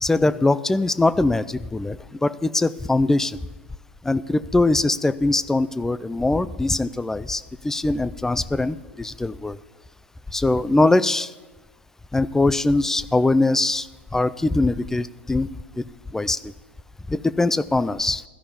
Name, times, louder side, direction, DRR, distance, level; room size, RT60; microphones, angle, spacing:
voice 1, 0.0-3.4 4.0-9.6 10.3-11.3 12.1-15.5 15.8-15.9 16.1-16.5 17.1-18.2, left 2 dB, 5° left, 16 dB, 0.3 m, -22 dB
13.5 x 5.6 x 6.7 m, 1.2 s
hypercardioid pair, 90°, 6 cm